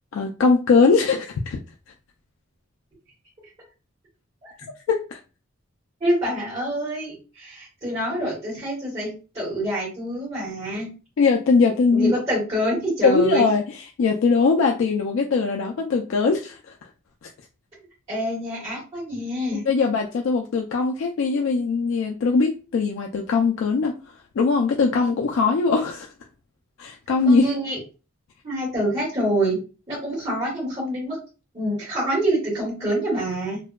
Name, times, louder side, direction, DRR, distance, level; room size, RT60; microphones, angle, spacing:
voice 1, 0.1-1.6 4.9-5.2 11.2-12.1 13.0-13.6 14.0-16.7 19.5-23.9 24.4-26.1 26.8-27.5, left 4 dB, 70° left, 2 dB, 0.3 m, -21 dB
voice 2, 6.0-10.9 11.9-13.5 18.1-19.6 27.2-27.8 28.4-29.6 29.9-31.2 31.5-33.6, right 1 dB, 30° right, -11 dB, 1.3 m, -26 dB
2.6 x 2.2 x 2.2 m, 0.32 s
head